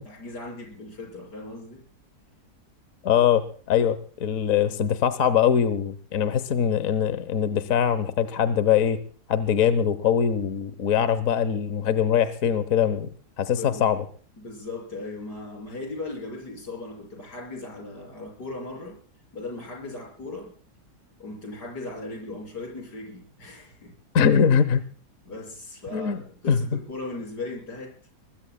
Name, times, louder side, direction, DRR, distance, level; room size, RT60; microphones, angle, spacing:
voice 1, 0.0-1.8 13.5-13.9 14.4-19.0 19.3-20.5 21.2-23.9 25.3-28.0, left 2 dB, 85° left, 1 dB, 6.9 m, -37 dB
voice 2, 3.0-9.0 9.3-13.1 13.4-14.0 24.1-24.8 25.9-26.2 26.5-26.6, left 8 dB, 60° left, 13 dB, 1.3 m, -22 dB
24.5 x 20.5 x 2.2 m, 0.43 s
omnidirectional pair, 1.7 m